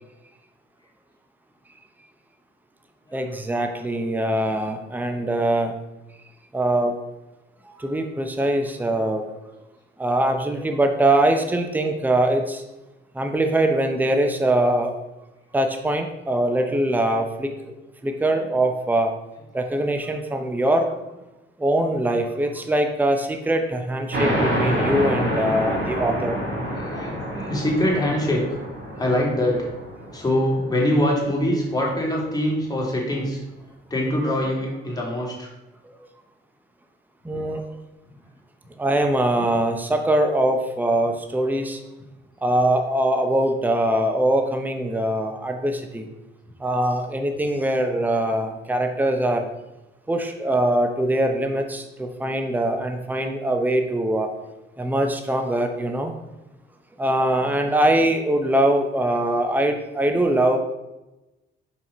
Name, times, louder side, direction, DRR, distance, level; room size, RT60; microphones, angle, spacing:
voice 1, 3.1-5.7 6.5-6.9 7.8-9.6 10.0-12.6 13.1-14.9 15.5-17.5 18.0-19.1 19.5-20.9 21.6-26.4 37.2-37.6 38.8-41.8 42.4-46.1 46.6-49.5 50.1-54.3 54.8-56.1 57.0-60.6, right 1 dB, 10° right, 5 dB, 0.8 m, -22 dB
sound 1, 24.1-31.3, equal, 60° right, 2.5 m, -27 dB
voice 2, 26.6-28.4 29.0-29.6 30.1-33.4 33.9-35.5 57.4-57.5, left 1 dB, 20° left, -3 dB, 2.6 m, -23 dB
5.6 x 4.9 x 5.2 m, 1.0 s
cardioid pair, 90°, 20 cm